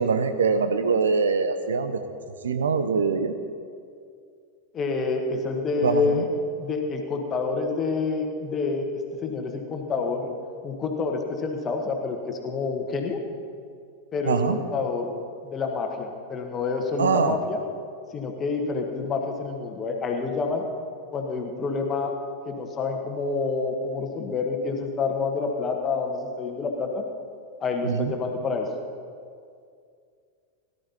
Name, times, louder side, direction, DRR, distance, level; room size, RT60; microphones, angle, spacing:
voice 1, 0.0-2.0 2.4-3.4 5.8-6.3 14.3-14.6 17.0-17.4 27.8-28.1, right 5 dB, 65° right, 10 dB, 0.8 m, -23 dB
voice 2, 4.7-6.3 6.6-8.8 9.2-10.3 10.6-13.2 14.1-15.1 15.5-17.6 18.1-20.6 21.1-22.1 22.4-27.0 27.6-28.7, left 4 dB, 25° left, 3 dB, 1.7 m, -28 dB
18.0 x 12.0 x 4.2 m, 2.3 s
figure-of-eight pair, 90°, 0 cm